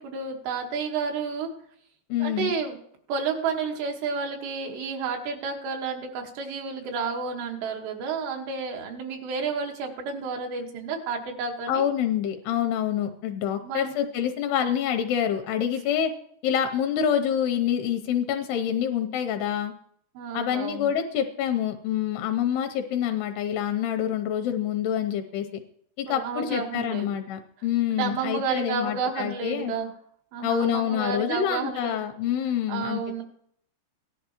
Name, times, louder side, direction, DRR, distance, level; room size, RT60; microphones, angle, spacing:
voice 1, 0.0-1.5 2.2-2.8 3.1-11.9 13.6-14.0 20.2-20.9 26.1-27.2 27.9-29.9 30.3-32.0 32.7-33.2, right 5 dB, 80° right, 3 dB, 3.5 m, -31 dB
voice 2, 2.1-2.5 11.7-16.1 16.4-19.7 20.3-25.5 26.0-29.7 30.4-33.2, left 9 dB, 80° left, 6 dB, 2.5 m, -27 dB
17.0 x 11.5 x 3.0 m, 0.68 s
omnidirectional pair, 5.0 m